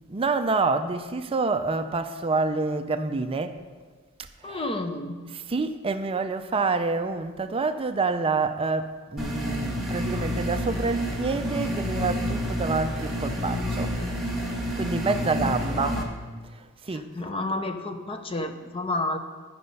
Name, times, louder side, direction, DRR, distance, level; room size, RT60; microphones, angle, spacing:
voice 1, 0.0-3.6 4.4-4.7 5.3-14.0 14.8-16.1 16.8-17.1, right 4 dB, 25° right, 9 dB, 0.4 m, -27 dB
voice 2, 4.4-5.2 15.7-16.0 17.2-19.2, left 2 dB, 25° left, 6 dB, 0.7 m, -30 dB
sound 1, 9.2-16.0, equal, ahead, 1.4 m, -29 dB
13.0 x 5.1 x 5.4 m, 1.5 s
head